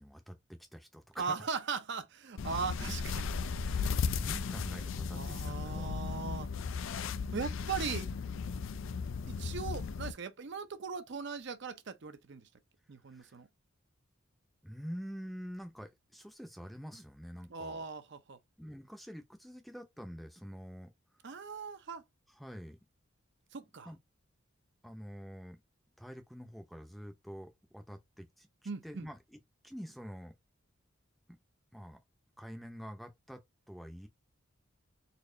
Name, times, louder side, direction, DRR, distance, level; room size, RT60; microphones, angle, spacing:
voice 1, 0.0-1.4 3.7-5.9 13.1-13.3 14.6-17.8 18.6-21.3 22.3-22.8 23.8-24.0 24.8-25.6 26.0-29.4 29.6-30.3 31.7-32.0 32.4-33.4 33.7-34.1, equal, ahead, 0.6 m, -47 dB
voice 2, 1.2-3.3 5.1-6.5 7.3-8.1 9.3-12.5 12.9-13.5 17.5-18.4 21.2-22.0 23.5-23.9 28.7-29.1, right 5 dB, 55° right, 0.6 m, -39 dB
sound 1, 2.4-10.1, left 5 dB, 65° left, 0.4 m, -36 dB
4.2 x 2.9 x 2.6 m
head